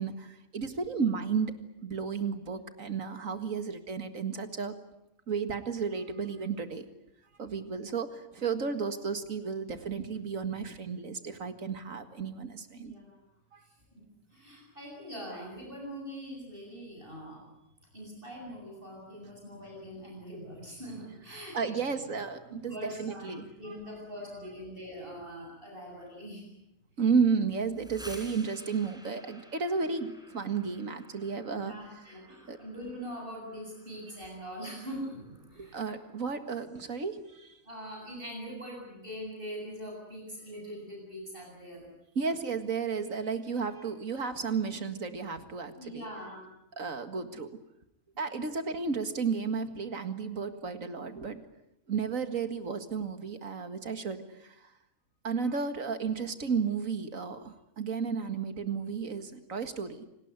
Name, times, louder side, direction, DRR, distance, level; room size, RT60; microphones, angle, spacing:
voice 1, 0.0-1.5 1.8-4.8 5.3-6.9 7.4-12.9 13.5-13.6 21.3-23.8 27.0-31.7 32.5-32.6 35.6-37.5 42.2-46.1 46.8-47.5 48.2-51.4 51.9-54.7 55.2-60.0, right 5 dB, 90° right, 9 dB, 2.3 m, -33 dB
voice 2, 12.7-13.2 13.6-14.0 14.3-17.5 17.9-22.0 22.5-26.5 31.5-35.8 37.6-41.9 45.7-46.6 48.2-48.4, equal, 40° right, -1 dB, 8.0 m, -43 dB
sound 1, 27.6-37.3, equal, 5° right, 4.5 m, -54 dB
27.5 x 19.5 x 9.6 m, 0.85 s
omnidirectional pair, 1.4 m